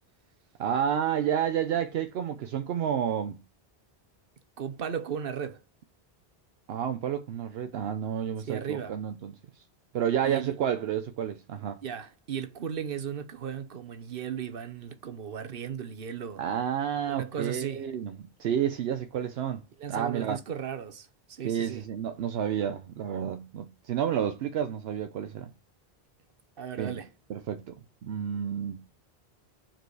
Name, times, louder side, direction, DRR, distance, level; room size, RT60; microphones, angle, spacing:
voice 1, 0.6-3.4 6.7-9.3 9.9-11.8 16.4-19.6 19.9-20.4 21.4-25.5 26.8-27.0 27.3-27.8 28.0-28.8, right 9 dB, 80° right, 0.9 m, -30 dB
voice 2, 4.6-5.6 8.5-9.0 10.2-10.5 11.8-16.4 17.1-17.8 19.8-21.8 26.6-27.1, right 8 dB, 65° right, 1.1 m, -36 dB
6.7 x 4.6 x 4.7 m
omnidirectional pair, 1.0 m